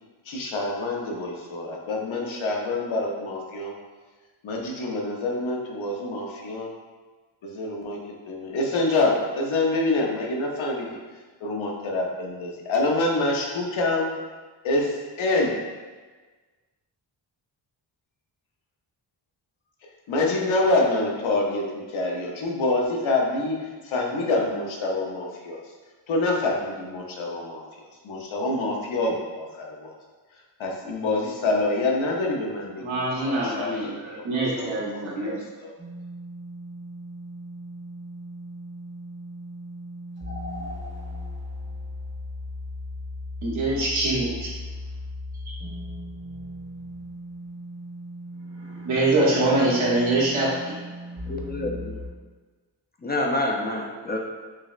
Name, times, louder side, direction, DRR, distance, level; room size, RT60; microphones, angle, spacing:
voice 1, 0.3-3.7 4.4-6.7 7.4-8.0 8.3-10.9 11.4-14.1 14.6-15.5 20.1-25.6 26.1-29.9 30.6-34.2 34.6-35.7, left 2 dB, 80° left, -1 dB, 0.8 m, -26 dB
voice 2, 32.8-35.4 43.4-44.5 45.4-45.5 48.8-50.7, right 2 dB, 85° right, -5 dB, 1.2 m, -24 dB
sound 1, 35.8-52.1, left 1 dB, 25° right, 0.7 m, -37 dB
voice 3, 51.3-51.9 53.0-54.2, left 2 dB, 25° left, 0 dB, 0.3 m, -27 dB
6.0 x 2.1 x 2.4 m, 1.3 s
wide cardioid pair, 115°, 47 cm